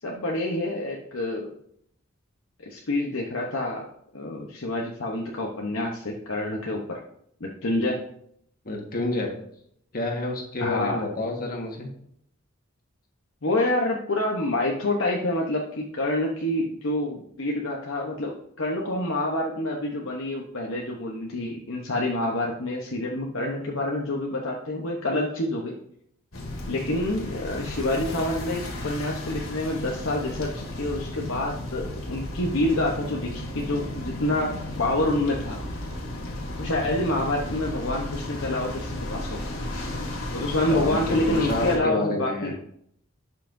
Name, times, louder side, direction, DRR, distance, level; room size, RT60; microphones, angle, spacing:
voice 1, 0.0-1.5 2.6-3.9 4.1-7.0 7.4-8.0 10.6-11.1 13.4-25.7 26.7-35.6 36.6-39.5 40.3-42.5, left 1 dB, 65° left, -1 dB, 0.9 m, -27 dB
voice 2, 8.6-9.3 9.9-11.9 40.7-42.5, left 2 dB, 45° left, 1 dB, 1.5 m, -29 dB
sound 1, 26.3-41.8, left 1 dB, 80° left, 2.1 m, -34 dB
11.5 x 5.7 x 2.7 m, 0.69 s
head